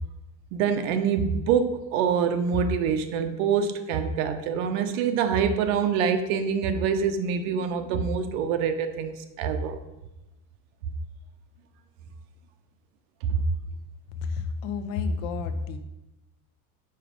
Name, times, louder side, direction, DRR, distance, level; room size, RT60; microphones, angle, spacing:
voice 1, 0.5-9.8 13.3-13.4, right 6 dB, 80° right, 8 dB, 0.8 m, -25 dB
voice 2, 14.2-15.8, left 4 dB, 75° left, 9 dB, 0.9 m, -30 dB
5.6 x 4.9 x 5.0 m, 0.96 s
cardioid pair, 180°, 40 cm